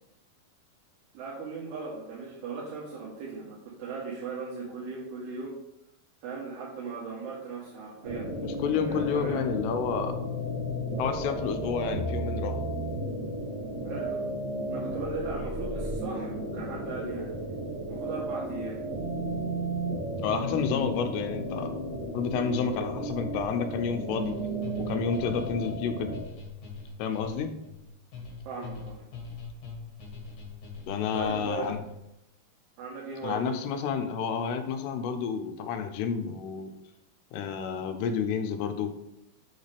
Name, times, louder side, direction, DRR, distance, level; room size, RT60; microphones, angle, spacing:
voice 1, 1.1-5.6 6.2-8.3 8.9-9.4 13.8-14.2 14.7-17.3 17.9-18.8 28.4-29.0 31.1-31.7 32.8-33.7, right 4 dB, 85° right, -6 dB, 3.4 m, -38 dB
sound 1, 8.0-26.2, right 1 dB, 70° right, 0.7 m, -33 dB
voice 2, 8.4-10.2 11.0-12.6 20.2-21.8 22.1-24.4 24.8-26.2 27.0-27.5 30.9-31.8 33.2-36.7 37.3-38.9, left 6 dB, 85° left, 7 dB, 2.8 m, -30 dB
sound 2, 24.1-32.0, left 4 dB, 60° left, 3.5 m, -42 dB
7.8 x 6.5 x 3.4 m, 0.85 s
omnidirectional pair, 4.6 m